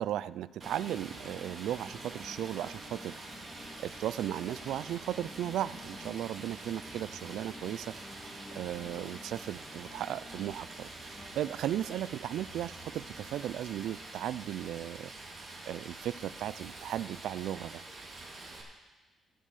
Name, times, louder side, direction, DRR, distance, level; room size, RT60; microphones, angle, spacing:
voice 1, 0.0-3.1 3.8-7.9 8.5-15.1 15.7-17.8, right 12 dB, 80° right, 18 dB, 0.3 m, -36 dB
sound 1, 0.6-13.3, left 2 dB, 30° left, 1.1 m, -52 dB
Stream, 0.6-18.6, right 2 dB, 45° right, 2.5 m, -46 dB
15.0 x 5.4 x 6.7 m, 1.2 s
cardioid pair, 75°, 0 cm